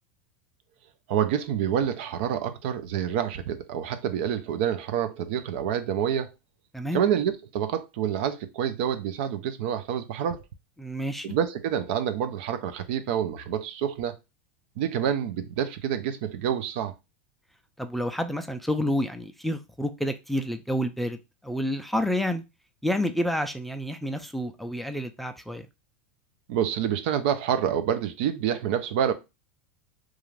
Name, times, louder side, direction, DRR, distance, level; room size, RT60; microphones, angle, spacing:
voice 1, 1.1-6.3 6.9-10.4 11.2-14.2 14.8-16.9 26.5-29.1, right 9 dB, 65° right, 0.4 m, -27 dB
voice 2, 10.8-11.4 17.8-22.4 22.8-25.7, equal, ahead, 0.3 m, -29 dB
2.5 x 2.4 x 3.1 m
hypercardioid pair, 110°, 6 cm